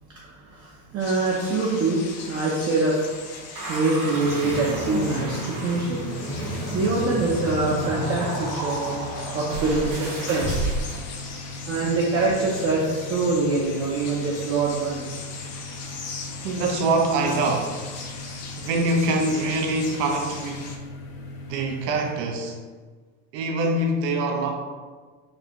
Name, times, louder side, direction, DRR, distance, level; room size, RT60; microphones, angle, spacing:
voice 1, 0.2-3.1 3.7-6.0 6.7-10.7 11.7-15.1, right 3 dB, 35° right, 0.5 m, -24 dB
sound 1, 1.0-20.8, left 4 dB, 35° left, 0.4 m, -40 dB
sound 2, 3.5-11.1, right 1 dB, 70° right, 1.4 m, -31 dB
sound 3, 4.2-22.1, left 2 dB, 65° left, 0.8 m, -39 dB
voice 2, 10.8-11.4 16.4-20.8 21.5-22.6 23.3-24.6, right 2 dB, 85° right, 0.7 m, -25 dB
4.1 x 2.2 x 2.9 m
supercardioid pair, 120°, 47 cm